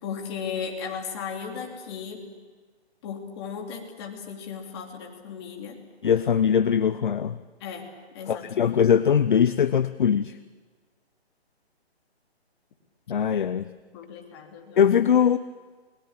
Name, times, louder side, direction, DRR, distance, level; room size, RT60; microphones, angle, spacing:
voice 1, 0.0-2.2 3.0-5.8 7.6-7.9 8.1-8.7 13.9-14.9, left 6 dB, 25° left, 0 dB, 3.0 m, -36 dB
voice 2, 6.0-7.4 8.3-10.3 13.1-13.6 14.8-15.4, left 8 dB, 50° left, 14 dB, 0.7 m, -21 dB
29.0 x 21.0 x 7.5 m, 1.4 s
hypercardioid pair, 165°, 33 cm